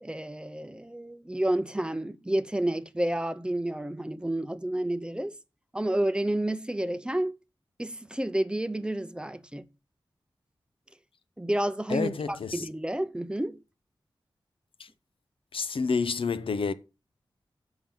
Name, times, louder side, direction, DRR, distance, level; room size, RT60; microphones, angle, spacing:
voice 1, 0.0-5.3 5.7-7.3 7.8-9.7 11.4-13.6, right 1 dB, 10° right, 0.6 m, -30 dB
voice 2, 11.9-12.6 15.5-16.7, left 5 dB, 85° left, 0.7 m, -29 dB
7.2 x 5.8 x 7.0 m
wide cardioid pair, 110°, 9 cm